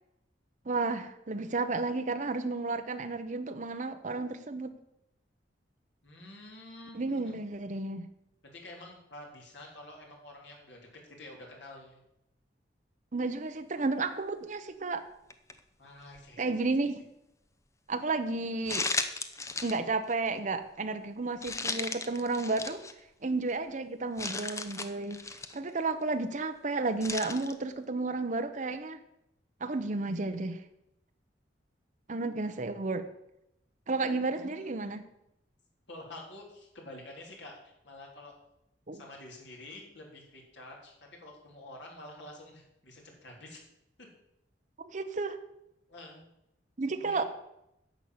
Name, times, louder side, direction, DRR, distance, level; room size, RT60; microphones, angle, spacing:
voice 1, 0.7-4.7 6.9-8.1 13.1-15.0 16.4-17.0 17.9-18.9 19.6-22.8 23.2-25.2 25.5-29.0 29.6-30.6 32.1-33.1 33.9-35.0 38.9-39.0 44.8-45.4 46.8-47.2, right 3 dB, 45° right, 7 dB, 0.8 m, -32 dB
voice 2, 6.0-7.3 8.4-12.0 15.8-16.5 34.3-35.0 35.9-38.3 38.9-43.6 45.9-46.3 46.9-47.2, left 1 dB, 75° left, 0 dB, 3.5 m, -49 dB
sound 1, 15.3-15.6 16.1-16.2 18.7-19.8 20.1-20.3 21.4-22.9 23.5-23.6 24.2-25.6 27.0-27.5, left 3 dB, 15° left, 0.7 m, -35 dB
10.5 x 7.2 x 7.8 m, 0.85 s
head